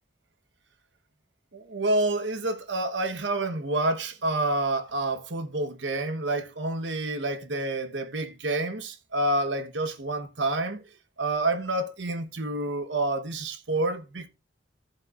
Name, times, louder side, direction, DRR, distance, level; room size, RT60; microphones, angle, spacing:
voice 1, 1.5-10.8 11.2-14.3, right 2 dB, 75° right, 1.1 m, -28 dB
14.0 x 8.0 x 2.4 m
head